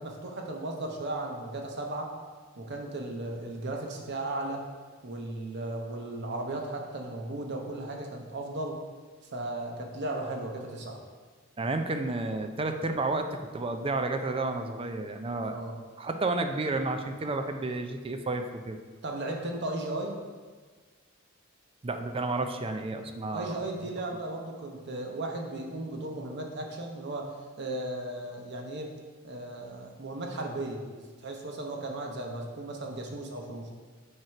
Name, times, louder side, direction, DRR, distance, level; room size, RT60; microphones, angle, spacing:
voice 1, 0.0-2.1 2.6-4.6 5.0-8.8 9.3-11.0 15.5-15.8 19.0-20.2 23.3-29.0 29.2-33.7, right 2 dB, 60° right, 1 dB, 0.9 m, -36 dB
voice 2, 11.6-15.6 16.0-18.8 21.8-23.6, right 2 dB, 25° right, 6 dB, 0.4 m, -31 dB
7.7 x 3.0 x 5.8 m, 1.4 s
head